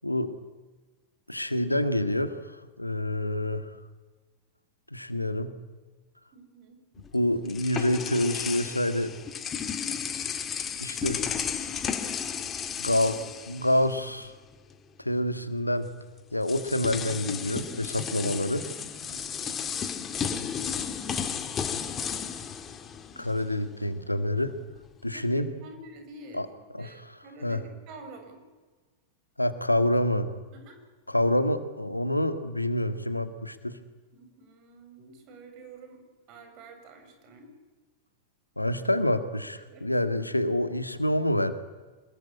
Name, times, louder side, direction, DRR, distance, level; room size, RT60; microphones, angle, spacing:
voice 1, 1.3-2.4 2.8-3.7 4.9-5.5 7.1-9.1 10.8-11.3 12.8-13.2 13.5-14.3 15.0-15.9 16.3-18.7 23.2-24.6 25.0-25.5 26.3-26.5 26.7-27.1 27.4-27.6 29.4-30.3 31.1-33.8 38.6-41.5, left 1 dB, 85° left, 11 dB, 1.8 m, -27 dB
voice 2, 6.3-6.8 11.8-12.4 19.1-19.6 25.1-26.5 26.8-28.4 30.5-30.8 34.1-37.5 39.6-39.9, right 2 dB, 40° right, 5 dB, 7.2 m, -48 dB
sound 1, 7.0-14.2 14.5-14.7 15.8-15.9 16.4-23.6, left 7 dB, 25° left, 2.3 m, -33 dB
26.0 x 21.5 x 9.9 m, 1.3 s
figure-of-eight pair, 90°, 0 cm